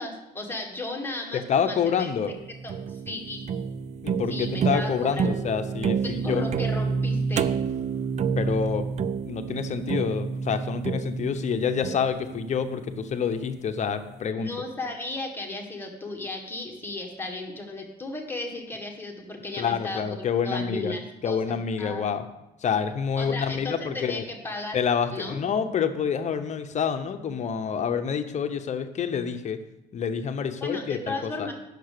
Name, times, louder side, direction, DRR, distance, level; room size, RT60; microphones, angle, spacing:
voice 1, 0.0-2.1 2.6-3.4 4.3-5.3 6.0-7.5 14.4-20.0 20.4-22.1 23.2-24.8 25.1-25.4 30.6-31.5, left 2 dB, 10° left, 1 dB, 1.8 m, -35 dB
voice 2, 1.3-2.3 4.0-6.5 8.4-8.9 9.3-14.5 19.6-20.9 21.2-22.3 22.6-24.2 24.7-29.6 29.9-31.5, left 7 dB, 45° left, 8 dB, 0.9 m, -27 dB
sound 1, 2.3-13.5, right 5 dB, 45° right, 0.4 m, -29 dB
9.2 x 6.7 x 6.7 m, 0.92 s
cardioid pair, 110°, 17 cm